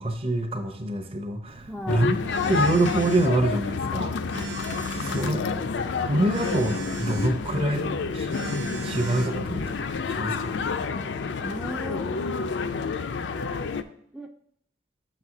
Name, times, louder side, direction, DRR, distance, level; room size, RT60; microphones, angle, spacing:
voice 1, 0.0-4.5 5.0-5.4 6.1-7.8 8.1-8.4 8.8-9.6 10.0-10.6, right 1 dB, 30° right, 3 dB, 0.7 m, -26 dB
Telephone, 1.5-10.0, right 3 dB, 85° right, 0.7 m, -39 dB
voice 2, 1.7-2.1 4.7-5.8 7.5-8.1 9.3-9.7 11.4-12.7 14.1-14.3, equal, ahead, 3 dB, 0.3 m, -38 dB
sound 1, 1.9-13.8, left 5 dB, 80° left, 0.5 m, -29 dB
6.3 x 4.1 x 6.0 m, 0.66 s
head